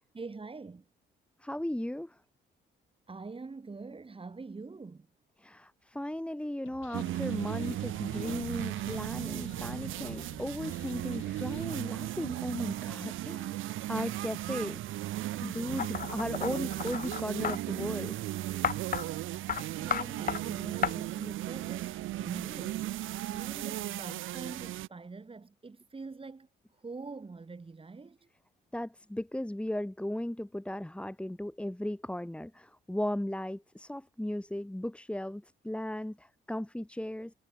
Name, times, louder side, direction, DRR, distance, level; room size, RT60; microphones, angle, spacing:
voice 1, 0.1-0.8 3.1-5.1 19.4-26.5 26.7-28.2, right 4 dB, 25° right, 7.2 m, -44 dB
voice 2, 1.4-2.1 5.4-13.6 13.9-14.8 15.4-18.1 28.7-37.3, left 1 dB, 5° left, 3.3 m, -36 dB
sound 1, 6.7-11.8, left 12 dB, 80° left, 6.6 m, -52 dB
sound 2, 6.9-24.9, right 15 dB, 80° right, 0.9 m, -36 dB
sound 3, 15.8-17.6 18.6-19.0 19.5-19.6 19.9-20.4 20.8-20.9, left 8 dB, 45° left, 0.9 m, -32 dB
cardioid pair, 90°, 20 cm